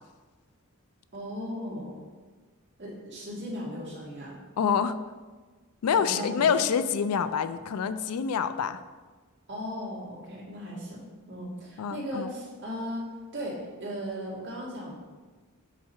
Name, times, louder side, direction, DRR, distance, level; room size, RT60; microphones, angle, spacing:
voice 1, 1.1-2.0 2.8-4.4 5.9-6.5 9.5-13.1 13.3-14.9, equal, 50° right, -6 dB, 2.1 m, -37 dB
voice 2, 4.6-5.0 5.8-8.8 11.8-12.3, left 7 dB, 90° left, 12 dB, 0.4 m, -26 dB
7.3 x 2.8 x 5.6 m, 1.4 s
head